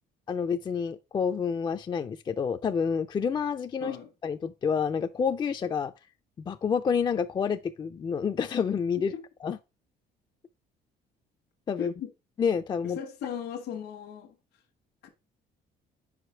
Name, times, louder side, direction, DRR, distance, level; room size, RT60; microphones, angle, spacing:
voice 1, 0.3-4.0 4.2-5.9 6.5-9.1 9.4-9.6 11.7-11.9 12.4-13.0, left 6 dB, 25° left, 0.3 m, -28 dB
voice 2, 11.8-12.1 12.8-14.3 15.0-15.1, left 8 dB, 75° left, 1.2 m, -37 dB
5.0 x 4.8 x 4.3 m
cardioid pair, 110°, 17 cm